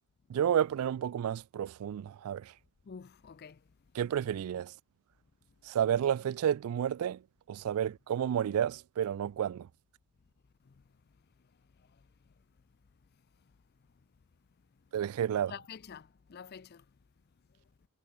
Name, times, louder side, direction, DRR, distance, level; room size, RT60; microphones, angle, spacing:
voice 1, 0.3-2.5 3.9-4.7 5.7-7.2 7.5-9.7 14.9-15.5, right 9 dB, 80° right, 0.3 m, -31 dB
voice 2, 2.9-3.6 15.5-16.8, left 7 dB, 45° left, 0.4 m, -47 dB
head